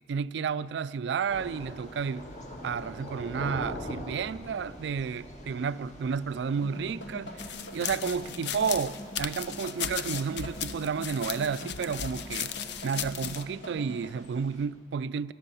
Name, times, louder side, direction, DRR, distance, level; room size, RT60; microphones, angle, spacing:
voice 1, 0.1-2.3 2.6-15.3, right 6 dB, 65° right, 0.3 m, -32 dB
Thunder / Rain, 1.3-14.7, left 1 dB, 40° left, 1.6 m, -45 dB
sound 1, 6.5-14.1, equal, 85° left, 2.2 m, -43 dB
sound 2, 7.4-13.4, left 9 dB, 65° left, 0.6 m, -36 dB
17.5 x 11.5 x 7.0 m
head